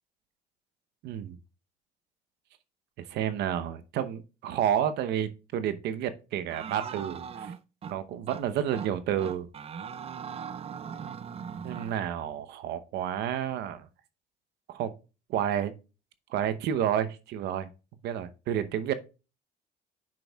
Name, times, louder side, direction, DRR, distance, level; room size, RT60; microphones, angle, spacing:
voice 1, 1.0-1.4 3.0-7.5 7.9-9.5 11.6-13.9 14.7-14.9 15.3-15.7 16.3-17.7 18.0-18.9, right 10 dB, 80° right, 0.9 m, -30 dB
sound 1, 6.5-7.9 8.3-8.4 8.7-8.9 9.2-12.0, right 7 dB, 35° right, 0.5 m, -39 dB
8.5 x 6.3 x 2.3 m
cardioid pair, 110°, 17 cm